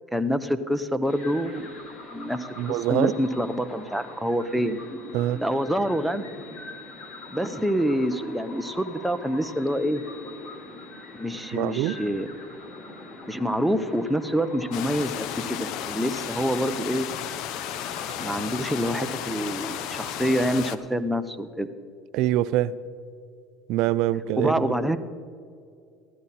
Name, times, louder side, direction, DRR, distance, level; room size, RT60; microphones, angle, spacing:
voice 1, 0.1-1.8 2.1-4.8 5.4-6.2 7.3-10.0 11.1-12.3 13.3-17.1 18.2-21.7 24.4-25.0, equal, ahead, 9 dB, 0.7 m, -26 dB
sound 1, 1.0-20.2, left 2 dB, 40° left, 3.3 m, -42 dB
voice 2, 2.6-3.2 5.1-5.4 11.5-12.0 22.1-22.8 23.7-24.7, right 14 dB, 65° right, 16 dB, 0.4 m, -24 dB
sound 2, 14.7-20.8, left 11 dB, 60° left, 0.7 m, -34 dB
15.0 x 12.0 x 4.2 m, 2.3 s
supercardioid pair, 110°, 0 cm